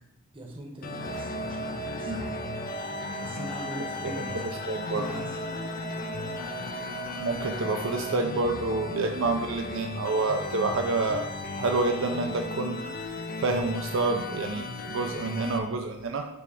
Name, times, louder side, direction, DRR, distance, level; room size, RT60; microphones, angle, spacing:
voice 1, 0.3-2.5 3.2-4.3 4.9-5.4, right 1 dB, 25° right, 1 dB, 0.9 m, -41 dB
sound 1, 0.8-15.6, left 3 dB, 40° left, 0.4 m, -36 dB
sound 2, 1.0-8.1, right 3 dB, 75° left, 2.3 m, -39 dB
voice 2, 4.7-5.0 7.2-11.3 11.6-12.8 13.4-16.2, right 3 dB, 60° right, 4 dB, 0.5 m, -28 dB
6.2 x 3.3 x 4.8 m, 0.84 s
head